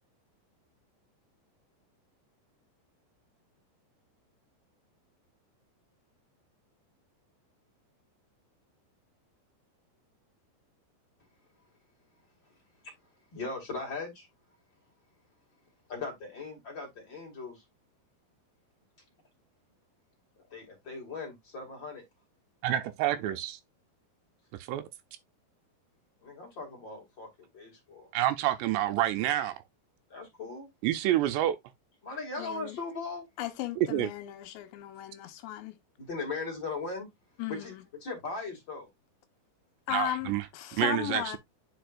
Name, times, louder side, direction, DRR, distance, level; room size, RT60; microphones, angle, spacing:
voice 1, 13.3-14.3 15.9-17.6 20.5-22.0 26.2-28.1 30.1-30.7 32.0-33.2 36.0-37.1 37.5-37.7 38.0-38.9, left 3 dB, 35° left, 2.0 m, -38 dB
voice 2, 22.6-23.6 24.7-24.9 28.1-29.6 30.8-31.6 33.8-34.1 39.9-40.4 40.8-41.4, right 13 dB, 80° right, 2.6 m, -28 dB
voice 3, 32.4-32.8 33.4-35.8 37.4-37.8 39.9-41.4, left 13 dB, 85° left, 3.2 m, -36 dB
9.1 x 4.9 x 2.5 m
omnidirectional pair, 5.1 m